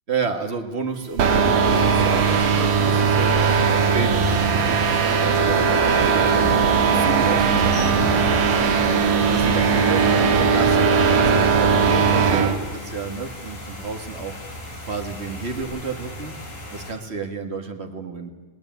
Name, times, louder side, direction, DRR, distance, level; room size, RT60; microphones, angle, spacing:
voice 1, 0.1-4.8 5.1-6.6 6.9-8.5 8.8-14.3 14.8-16.3 16.7-18.3, right 4 dB, 35° right, 5 dB, 1.1 m, -31 dB
sound 1, 1.2-12.6, right 6 dB, 85° right, 3.5 m, -19 dB
sound 2, 1.7-16.9, left 1 dB, 80° left, 7.1 m, -33 dB
Wind instrument woodwind instrument, 6.3-10.7, left 11 dB, ahead, 5.6 m, -32 dB
20.5 x 18.0 x 9.3 m, 1.2 s
omnidirectional pair, 3.7 m